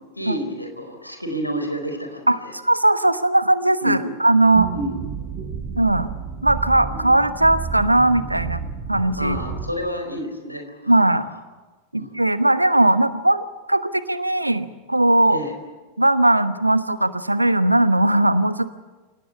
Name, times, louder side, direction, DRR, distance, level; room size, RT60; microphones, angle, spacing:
voice 1, 0.1-2.5 3.8-4.1 4.7-4.9 9.2-11.0 11.9-12.1 15.3-15.5, equal, 90° left, 5 dB, 4.6 m, -29 dB
voice 2, 2.3-4.7 5.8-6.1 6.4-8.6 8.9-9.4 10.9-11.3 11.9-15.4 16.0-18.7, right 1 dB, 85° right, 13 dB, 1.1 m, -18 dB
sound 1, 4.5-9.7, right 6 dB, 35° right, 4.3 m, -31 dB
27.5 x 17.5 x 8.5 m, 1.3 s
figure-of-eight pair, 90°, 0 cm